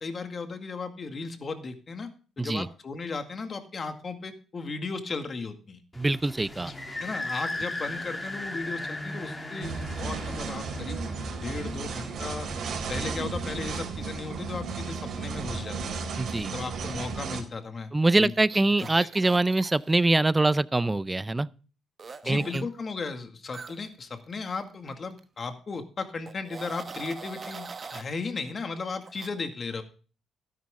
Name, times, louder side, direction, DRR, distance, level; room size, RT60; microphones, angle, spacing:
voice 1, 0.0-5.8 7.0-11.0 11.4-12.5 12.9-15.8 16.5-17.9 18.2-18.3 19.0-19.1 22.2-29.8, left 4 dB, 40° left, 2.0 m, -36 dB
sound 1, 5.9-13.3, left 1 dB, 20° left, 2.7 m, -37 dB
voice 2, 6.0-6.7 16.2-16.5 17.9-21.5 22.3-22.7, right 2 dB, 15° right, 0.5 m, -24 dB
sound 2, 9.6-17.4, right 4 dB, 70° right, 4.1 m, -34 dB
sound 3, 18.0-20.0 22.0-22.6 23.5-24.9 25.2-25.4 26.3-28.1 29.0-29.3, right 4 dB, 35° right, 1.1 m, -42 dB
13.0 x 10.5 x 3.7 m
cardioid pair, 90°, 0 cm